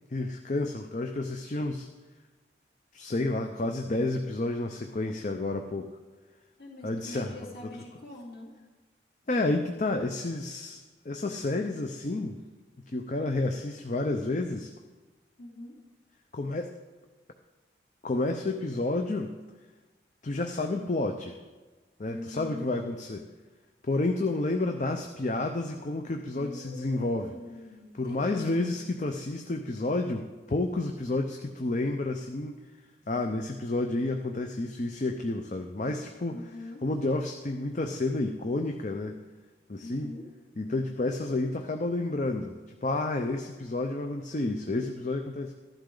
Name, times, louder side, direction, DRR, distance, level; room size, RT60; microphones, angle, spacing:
voice 1, 0.1-1.9 2.9-5.9 6.8-7.3 7.6-7.7 9.3-10.8 11.0-12.4 12.9-14.7 16.3-16.8 18.0-19.3 20.2-21.4 22.0-23.3 23.9-27.3 27.9-32.6 33.1-36.4 36.8-39.2 39.7-40.1 40.6-42.5 42.8-45.5, left 2 dB, 40° left, 5 dB, 0.6 m, -30 dB
voice 2, 6.6-8.5 15.4-15.8 22.1-22.8 26.3-28.8 36.3-36.8 39.8-40.3, left 1 dB, 55° left, -3 dB, 3.0 m, -43 dB
14.0 x 12.0 x 3.8 m, 1.3 s
head